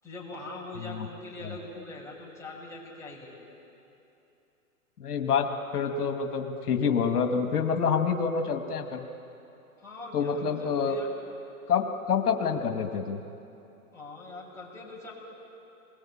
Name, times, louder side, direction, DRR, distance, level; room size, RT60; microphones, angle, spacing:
voice 1, 0.0-3.4 9.8-11.1 13.9-15.1, left 2 dB, 5° left, -5 dB, 6.7 m, -42 dB
voice 2, 5.0-9.0 10.1-11.0 11.7-13.2, left 6 dB, 85° left, 5 dB, 2.1 m, -27 dB
28.0 x 22.0 x 8.8 m, 2.9 s
hypercardioid pair, 135°, 45 cm